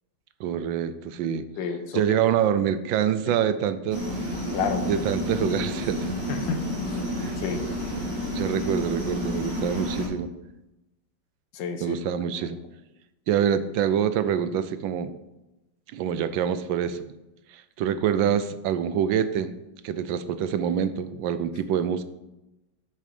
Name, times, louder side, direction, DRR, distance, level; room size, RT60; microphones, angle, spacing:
voice 1, 0.4-1.5 1.9-4.0 4.8-6.2 7.2-7.4 8.3-10.3 11.8-12.6 13.3-15.1 15.9-17.0 17.5-19.5 19.8-22.0, right 9 dB, 80° right, 12 dB, 1.4 m, -26 dB
voice 2, 1.6-2.4 3.3-3.4 4.5-4.9 6.3-6.6 6.9-7.0 7.4-7.6 11.5-12.0 12.4-12.5, left 6 dB, 75° left, 6 dB, 1.6 m, -31 dB
sound 1, 3.9-10.1, left 1 dB, 35° right, 3.5 m, -30 dB
8.8 x 6.4 x 5.3 m, 0.96 s
omnidirectional pair, 2.1 m